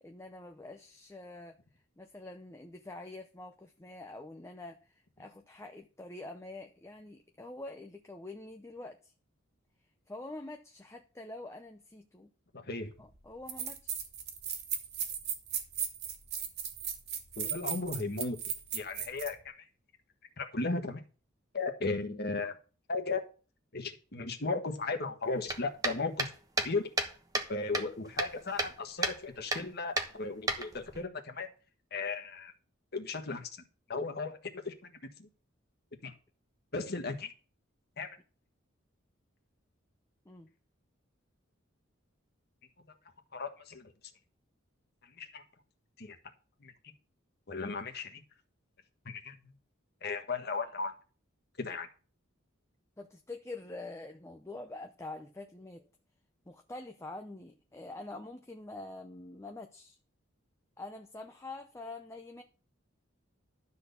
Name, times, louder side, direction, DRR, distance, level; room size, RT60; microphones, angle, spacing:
voice 1, 0.0-1.6 2.0-9.1 10.1-12.3 13.0-14.0 40.3-40.5 53.0-55.9 56.5-60.0 60.8-62.4, left 2 dB, 15° left, 0.7 m, -46 dB
voice 2, 12.5-12.9 17.4-18.4 18.7-19.7 20.4-21.0 21.5-22.5 22.9-23.2 23.7-26.3 26.6-26.9 27.5-31.5 31.9-32.5 32.9-33.5 33.9-34.4 34.6-34.7 35.2-35.3 36.0-36.1 36.7-37.3 38.0-38.1 42.8-42.9 43.3-43.9 45.1-45.4 46.0-46.2 46.6-46.7 47.5-48.2 49.0-49.4 50.0-50.9 51.6-51.9, left 3 dB, 55° left, 1.5 m, -35 dB
sound 1, 12.9-13.0 13.5-19.3, right 8 dB, 55° right, 1.7 m, -36 dB
sound 2, 25.5-27.5 27.7-28.8 29.0-29.2 29.5-29.7 30.0-31.0, right 2 dB, 20° right, 1.1 m, -32 dB
12.0 x 4.2 x 6.8 m
head